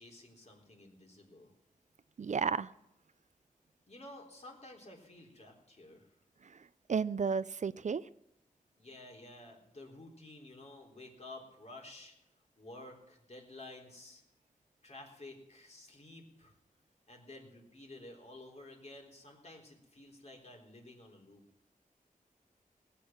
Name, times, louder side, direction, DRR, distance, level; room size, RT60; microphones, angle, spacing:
voice 1, 0.0-1.5 3.9-6.1 8.8-12.1 12.6-14.2 14.8-16.5 17.1-21.4, left 2 dB, 50° left, 1 dB, 3.9 m, -52 dB
voice 2, 2.2-2.7 6.9-8.0, right 5 dB, 55° right, 17 dB, 0.5 m, -32 dB
19.5 x 8.4 x 7.3 m, 0.81 s
wide cardioid pair, 80°, 14 cm